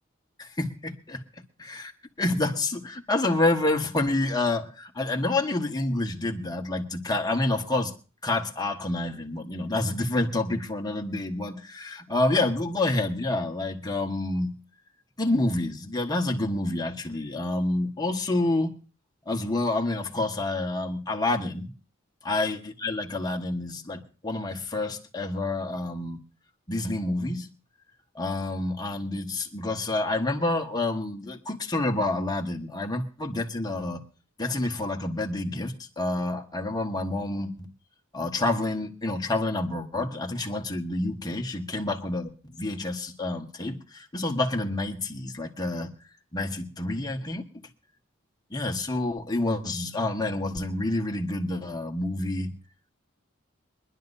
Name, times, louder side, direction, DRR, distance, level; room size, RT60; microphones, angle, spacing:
voice 1, 0.4-1.2 1.6-1.9 2.2-7.9 8.2-14.5 15.2-18.7 19.2-21.7 22.2-26.2 26.7-27.5 28.1-34.0 34.4-37.7 38.1-45.9 46.3-47.4 48.5-52.5, left 2 dB, 20° left, 2 dB, 1.5 m, -28 dB
23.5 x 11.0 x 2.7 m, 0.36 s
head